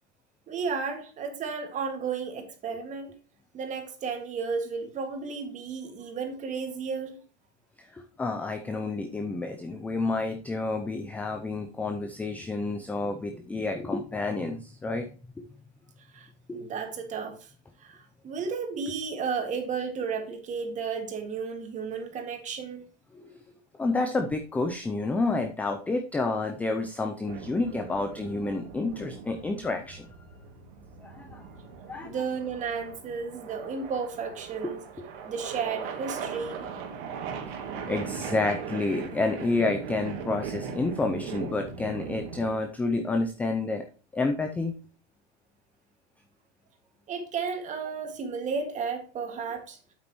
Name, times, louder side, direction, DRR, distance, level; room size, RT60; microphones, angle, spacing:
voice 1, 0.5-3.1 3.5-7.2 16.0-17.5 17.8-22.8 32.0-34.8 35.2-36.7 47.1-49.8, right 5 dB, 25° right, 5 dB, 2.1 m, -33 dB
voice 2, 7.8-15.1 23.1-23.2 23.8-30.1 31.0-31.4 31.9-32.1 34.6-34.7 37.9-43.8 44.1-44.7, left 3 dB, 5° left, 5 dB, 0.4 m, -29 dB
sound 1, 27.2-42.5, right 6 dB, 50° right, 2.4 m, -39 dB
8.8 x 8.3 x 3.1 m, 0.37 s
supercardioid pair, 145°, 32 cm